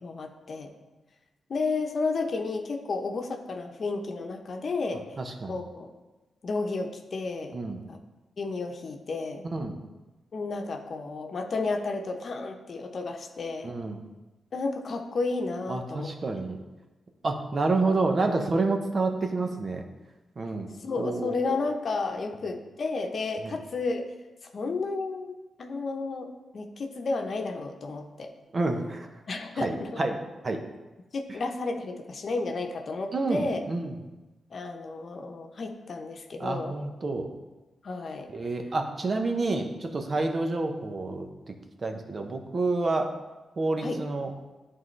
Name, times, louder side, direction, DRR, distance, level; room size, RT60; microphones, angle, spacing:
voice 1, 0.0-0.7 1.5-5.1 5.5-5.9 6.4-7.6 7.9-8.0 8.4-9.5 10.3-13.7 14.5-16.1 20.8-24.1 24.5-26.3 26.5-28.3 29.3-30.0 31.1-33.6 34.5-36.8 37.8-38.3 43.8-44.0, left 3 dB, 60° left, 4 dB, 0.8 m, -32 dB
voice 2, 5.2-5.6 7.5-7.8 9.4-9.8 13.6-14.0 15.7-16.6 17.2-19.8 20.4-20.7 21.0-21.3 28.5-29.1 29.6-30.6 33.1-33.9 36.4-37.3 38.3-41.5 41.8-43.1 43.6-44.3, right 3 dB, 50° right, 4 dB, 0.9 m, -29 dB
10.5 x 3.8 x 3.3 m, 1.1 s
supercardioid pair, 50°, 0 cm